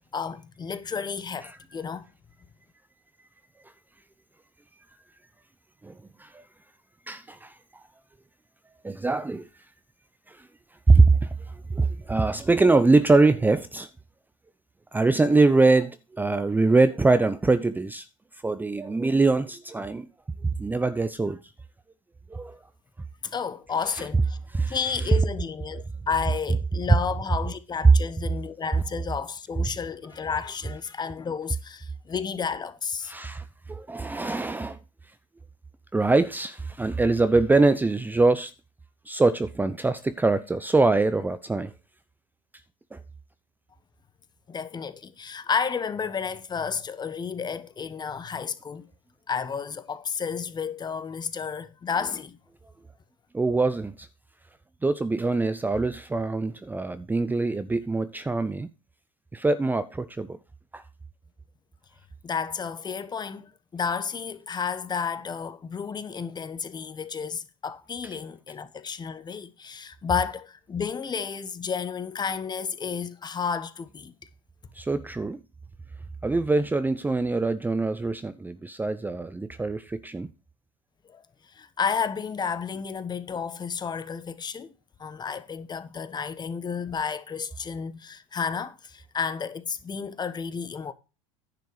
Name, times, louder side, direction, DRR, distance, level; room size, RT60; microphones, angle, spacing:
voice 1, 0.1-2.1 23.3-24.4 24.7-33.1 44.5-48.9 49.3-52.4 62.2-74.1 81.1-81.2 81.5-84.7 85.0-90.9, left 6 dB, 25° left, 1.3 m, -31 dB
voice 2, 5.8-6.4 7.1-7.8 8.8-9.5 10.3-10.5 10.9-13.9 14.9-18.1 18.4-20.1 20.6-21.4 22.3-22.6 24.5-24.8 33.0-34.8 35.9-38.5 39.1-41.7 42.9-43.0 53.3-54.1 54.8-58.7 59.3-60.4 60.7-60.8 74.7-75.4 76.2-80.3, right 3 dB, 10° right, 0.7 m, -23 dB
10.5 x 6.8 x 4.8 m
hypercardioid pair, 90°, 17 cm